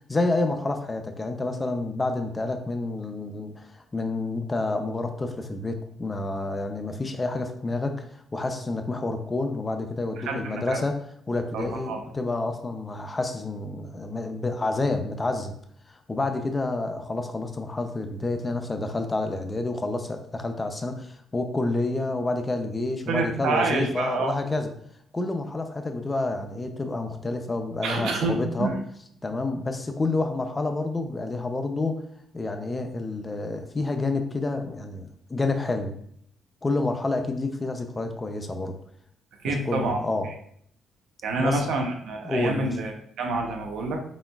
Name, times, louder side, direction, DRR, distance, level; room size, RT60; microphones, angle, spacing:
voice 1, 0.1-11.0 11.3-15.5 15.9-24.7 25.1-28.7 29.2-32.0 32.3-35.9 36.6-38.8 39.4-40.3 41.4-41.7 42.2-42.7, left 2 dB, 25° left, 6 dB, 0.5 m, -29 dB
voice 2, 10.2-10.8 11.5-12.0 23.1-24.4 27.8-28.7 39.4-40.0 41.2-44.0, right 3 dB, 80° right, 3 dB, 0.7 m, -28 dB
4.1 x 3.9 x 2.3 m, 0.66 s
cardioid pair, 90°, 0 cm